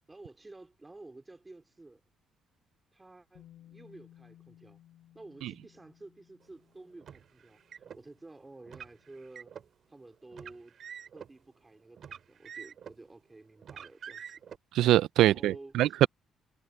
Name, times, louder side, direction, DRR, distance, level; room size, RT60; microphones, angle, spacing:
voice 1, 0.1-2.0 2.9-4.8 5.1-9.5 9.9-10.8 11.1-14.4 15.2-16.0, right 2 dB, 15° right, 3.7 m, -52 dB
Bass guitar, 3.3-9.4, left 12 dB, 80° left, 5.6 m, -60 dB
Car, 7.0-8.0 8.7-9.7 10.3-11.3 12.0-13.0 13.6-14.6, right 8 dB, 50° right, 2.6 m, -46 dB
voice 2, 14.7-16.1, right 14 dB, 85° right, 0.4 m, -23 dB
cardioid pair, 135°, 0 cm